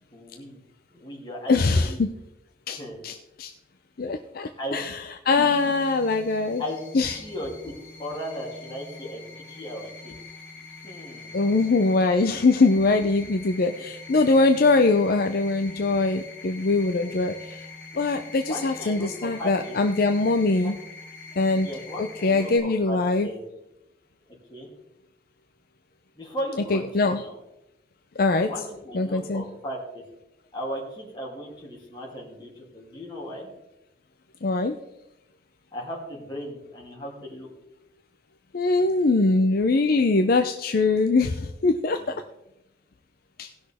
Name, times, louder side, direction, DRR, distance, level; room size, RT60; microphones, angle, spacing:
voice 1, 0.1-0.6 0.9-2.0 2.8-3.0 4.6-4.8 5.4-5.7 6.6-10.2 10.8-11.4 13.8-13.9 18.5-19.8 20.6-20.7 21.5-23.4 24.5-24.7 26.1-27.3 28.4-30.0 30.5-33.5 35.7-37.5, equal, 25° left, -4 dB, 2.9 m, -36 dB
voice 2, 1.5-2.1 2.7-3.5 4.0-6.6 6.9-7.2 11.3-17.6 17.9-20.8 21.4-21.7 22.0-23.3 26.7-27.2 28.2-28.5 28.9-29.4 34.4-34.8 38.5-42.2 43.4-43.5, left 3 dB, 55° left, 7 dB, 0.5 m, -22 dB
sound 1, 5.3-22.6, left 3 dB, 10° left, 3.6 m, -44 dB
18.0 x 6.3 x 3.5 m, 0.89 s
head